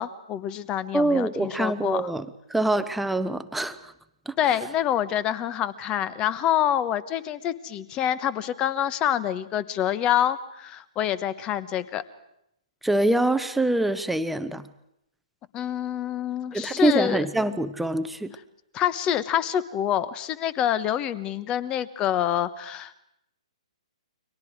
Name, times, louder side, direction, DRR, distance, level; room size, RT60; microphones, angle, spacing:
voice 1, 0.0-2.1 4.4-12.0 15.5-17.2 18.7-23.0, left 10 dB, 25° left, 16 dB, 1.2 m, -26 dB
voice 2, 0.9-3.9 4.3-4.4 12.8-14.7 16.5-18.3, right 2 dB, 5° right, 11 dB, 1.0 m, -25 dB
29.5 x 24.0 x 4.8 m, 0.79 s
hypercardioid pair, 130°, 4 cm